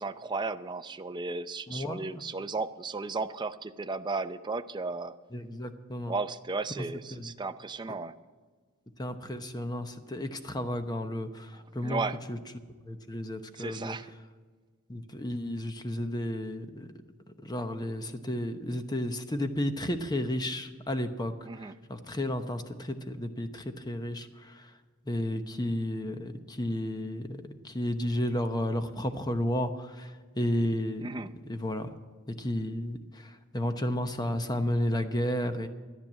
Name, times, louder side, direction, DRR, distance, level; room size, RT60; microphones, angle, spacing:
voice 1, 0.0-5.1 6.1-8.1 11.8-12.2 13.6-14.1 21.5-21.7 31.0-31.3, right 3 dB, 20° right, 10 dB, 0.5 m, -34 dB
voice 2, 1.7-2.2 5.3-6.1 6.8-6.9 7.1-7.3 9.0-12.0 12.3-12.4 12.8-14.0 14.9-16.9 17.4-24.7 25.0-31.9 32.3-35.7, left 1 dB, 20° left, 8 dB, 0.8 m, -32 dB
13.5 x 10.0 x 7.4 m, 1.5 s
head